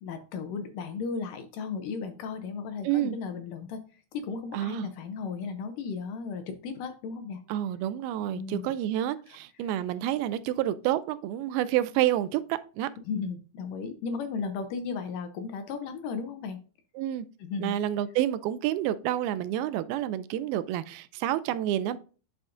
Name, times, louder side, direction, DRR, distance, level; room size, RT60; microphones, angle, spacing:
voice 1, 0.0-7.4 8.3-8.6 9.3-9.4 9.6-9.7 13.1-16.6 17.4-17.8, left 5 dB, 75° left, 2.0 m, -35 dB
voice 2, 2.8-3.2 4.5-4.9 7.5-12.9 17.0-17.3 17.6-22.0, right 12 dB, 85° right, 2.4 m, -29 dB
11.5 x 4.9 x 2.5 m
omnidirectional pair, 4.3 m